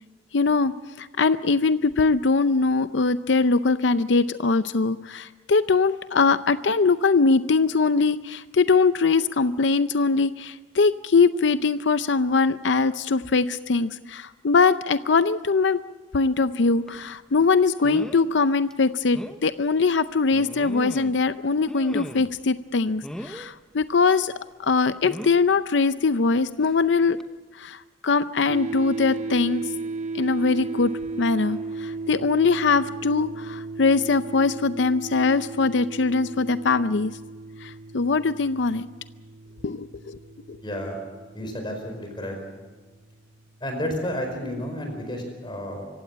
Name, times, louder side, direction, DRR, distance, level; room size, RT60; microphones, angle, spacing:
voice 1, 0.3-15.8 16.1-24.3 24.6-27.2 27.6-29.6 30.1-30.9 31.2-37.1 37.6-38.9 39.6-40.2, left 4 dB, 75° left, 13 dB, 0.6 m, -22 dB
sound 1, 16.9-17.0 17.8-18.3 18.7-18.8 19.1-19.4 20.3-21.2 21.7-22.4 23.0-23.5 25.0-25.5 26.6-26.8 27.2-27.3, equal, 5° left, 0.9 m, -37 dB
sound 2, 28.5-43.7, right 3 dB, 40° right, 0.8 m, -36 dB
voice 2, 40.6-41.0 41.3-42.4 43.6-45.9, equal, 25° left, 3 dB, 4.8 m, -31 dB
25.0 x 16.0 x 8.6 m, 1.3 s
head